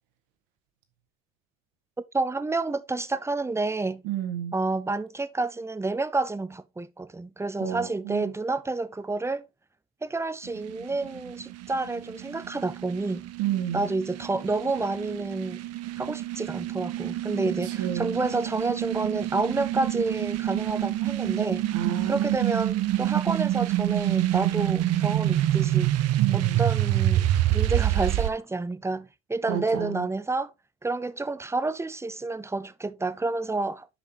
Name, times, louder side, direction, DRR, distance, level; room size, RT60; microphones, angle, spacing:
voice 1, 2.1-4.0 4.5-9.4 10.0-13.3 13.7-15.6 16.0-21.7 22.1-25.9 26.3-30.5 30.8-33.9, right 3 dB, 10° right, 0.6 m, -29 dB
voice 2, 4.0-4.5 7.6-8.3 13.4-13.9 17.6-18.2 21.7-22.5 26.2-26.6 29.5-30.1, right 11 dB, 65° right, 2.0 m, -30 dB
sound 1, 10.4-28.3, right 14 dB, 50° right, 0.8 m, -27 dB
10.0 x 5.5 x 3.0 m
hypercardioid pair, 65°, 33 cm